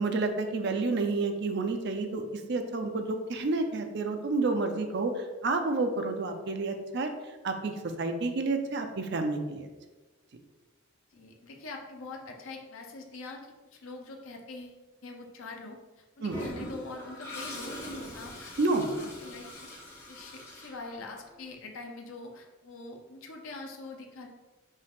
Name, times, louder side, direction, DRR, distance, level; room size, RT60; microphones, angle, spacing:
voice 1, 0.0-7.1 7.4-7.7 8.0-9.7 16.2-16.4 18.6-19.1, right 3 dB, 50° right, 6 dB, 0.5 m, -30 dB
voice 2, 11.1-18.9 19.2-19.7 20.1-24.3, left 3 dB, 70° left, 1 dB, 0.6 m, -44 dB
Toilet flush, 16.3-21.4, equal, 10° left, 0.9 m, -42 dB
5.4 x 2.4 x 3.5 m, 1.2 s
head